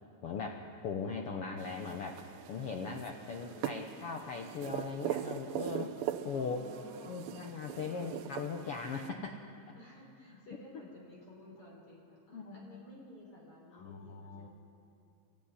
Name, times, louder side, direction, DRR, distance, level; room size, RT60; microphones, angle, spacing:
voice 1, 0.2-2.2 2.5-5.9 6.2-6.7 7.1-9.4 10.3-10.4 12.3-12.8 13.7-14.5, left 5 dB, 70° left, 3 dB, 1.3 m, -39 dB
voice 2, 1.1-1.8 3.4-4.6 6.3-7.2 7.9-8.2 9.8-14.5, left 1 dB, 40° left, -3 dB, 4.9 m, -54 dB
sound 1, 1.6-9.1, right 11 dB, 85° right, 2.5 m, -41 dB
24.5 x 13.5 x 9.7 m, 2.6 s
omnidirectional pair, 3.9 m